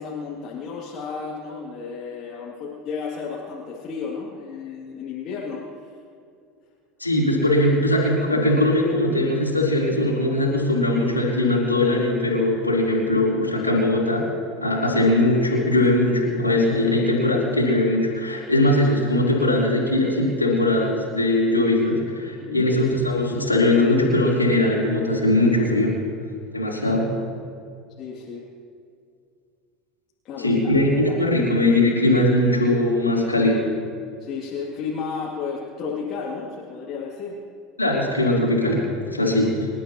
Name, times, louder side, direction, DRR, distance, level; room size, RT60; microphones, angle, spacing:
voice 1, 0.0-5.6 22.4-22.6 28.0-28.4 30.2-31.2 34.2-37.4, left 5 dB, 40° left, -5 dB, 2.5 m, -32 dB
voice 2, 7.0-14.3 14.6-26.0 26.5-27.1 30.4-33.7 37.8-39.7, left 1 dB, 90° left, -6 dB, 3.4 m, -20 dB
27.0 x 12.5 x 2.9 m, 2.3 s
figure-of-eight pair, 75°, 0 cm